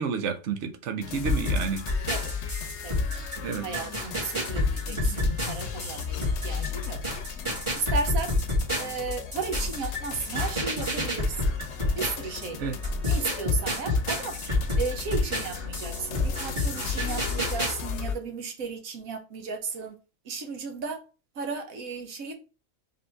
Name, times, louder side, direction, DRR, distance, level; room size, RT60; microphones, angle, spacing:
voice 1, 0.0-1.8 3.4-3.7 12.6-12.8, right 6 dB, 65° right, 1.0 m, -30 dB
sound 1, 1.0-18.2, left 7 dB, 65° left, 0.9 m, -36 dB
sound 2, 1.2-12.5 12.8-17.8, left 1 dB, 20° right, 2.0 m, -28 dB
voice 2, 3.6-7.0 7.7-8.3 8.7-11.6 11.9-12.6 13.0-14.4 14.8-20.0 20.2-21.0 21.3-22.3, right 4 dB, 80° right, 1.3 m, -34 dB
3.8 x 3.7 x 3.4 m
omnidirectional pair, 1.4 m